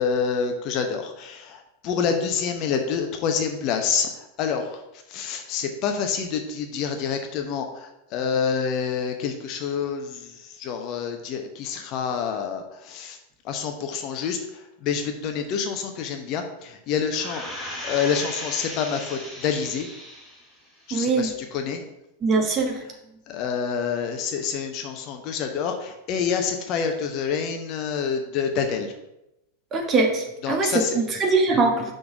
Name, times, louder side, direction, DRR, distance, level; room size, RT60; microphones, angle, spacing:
voice 1, 0.0-4.8 5.1-13.2 13.4-17.4 17.8-19.9 20.9-21.8 23.3-28.9 30.4-31.0, left 6 dB, 40° left, 5 dB, 0.8 m, -27 dB
sound 1, 17.1-20.5 21.0-21.1, left 1 dB, 15° left, 2.4 m, -36 dB
voice 2, 20.9-21.3 22.2-22.8 29.7-31.9, right 3 dB, 25° right, 2 dB, 1.4 m, -22 dB
5.9 x 3.9 x 6.0 m, 0.89 s
figure-of-eight pair, 90°, 0 cm